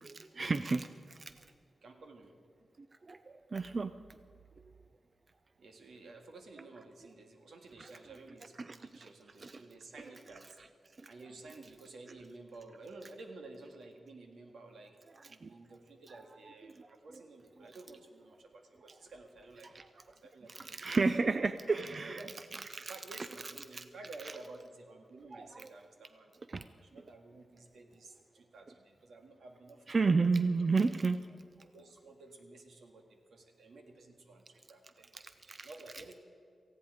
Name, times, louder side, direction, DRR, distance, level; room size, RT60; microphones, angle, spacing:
voice 1, 0.0-1.3 3.1-3.9 8.6-9.1 9.4-9.6 11.0-11.1 15.4-15.5 19.8-19.9 20.5-22.2 22.5-22.9 23.7-23.8 25.3-25.7 26.5-26.6 29.9-31.2 35.5-35.7, right 4 dB, 35° right, 11 dB, 0.4 m, -32 dB
voice 2, 1.8-2.3 5.6-10.6 11.1-15.0 15.3-21.0 21.7-22.3 22.8-26.3 26.8-30.5 31.7-36.1, right 2 dB, 80° right, 4 dB, 1.9 m, -53 dB
18.5 x 15.5 x 4.9 m, 2.4 s
wide cardioid pair, 175°, 0 cm